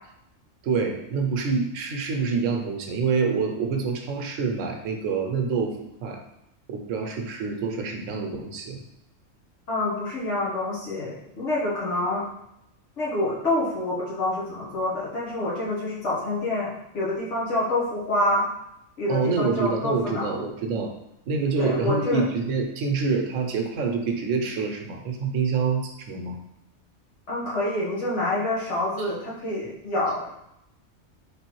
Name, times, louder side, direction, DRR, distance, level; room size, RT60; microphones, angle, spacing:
voice 1, 0.6-6.2 6.7-8.8 19.1-20.9 21.3-26.4 29.0-29.1, right 5 dB, 90° right, 2 dB, 1.0 m, -26 dB
voice 2, 9.7-12.3 13.0-18.5 19.0-20.4 21.6-22.2 27.3-30.3, left 1 dB, 70° left, -7 dB, 1.5 m, -27 dB
3.6 x 3.4 x 3.0 m, 0.81 s
omnidirectional pair, 1.3 m